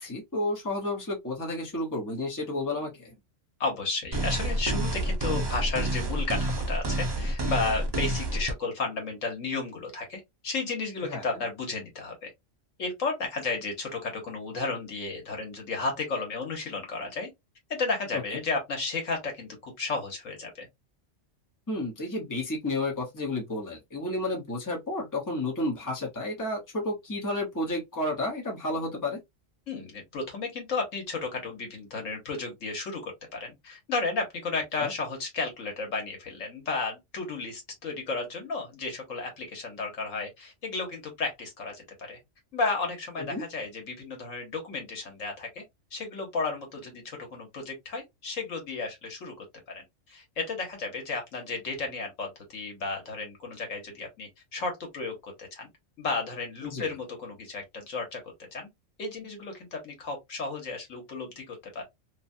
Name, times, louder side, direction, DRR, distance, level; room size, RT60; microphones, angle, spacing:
voice 1, 0.0-3.1 11.1-11.2 21.7-29.2 34.8-34.9 43.3-43.4 56.6-56.9, left 2 dB, 15° left, 0.9 m, -31 dB
voice 2, 3.6-12.3 12.8-17.3 17.7-20.7 29.7-42.2 42.5-45.6 45.9-55.7 56.0-58.7 59.0-61.8, left 3 dB, 80° left, 1.5 m, -33 dB
sound 1, 4.1-8.5, right 1 dB, 40° right, 0.3 m, -28 dB
3.0 x 2.3 x 2.6 m
omnidirectional pair, 1.3 m